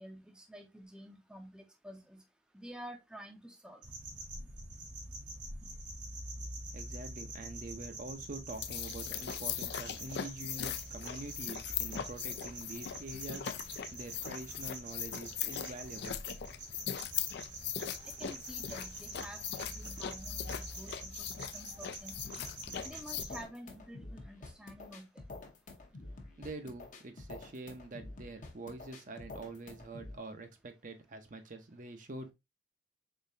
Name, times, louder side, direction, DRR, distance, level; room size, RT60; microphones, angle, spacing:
voice 1, 0.0-2.2 2.5-3.8 18.2-22.4 22.8-25.2, equal, 5° right, 0.6 m, -50 dB
sound 1, 3.8-23.4, right 2 dB, 70° right, 1.7 m, -46 dB
voice 2, 6.7-16.2 26.4-32.3, right 2 dB, 45° right, 0.7 m, -46 dB
sound 2, 8.5-23.2, left 9 dB, 65° left, 0.4 m, -40 dB
sound 3, 22.2-30.2, left 2 dB, 45° left, 0.8 m, -49 dB
3.8 x 3.8 x 2.6 m
head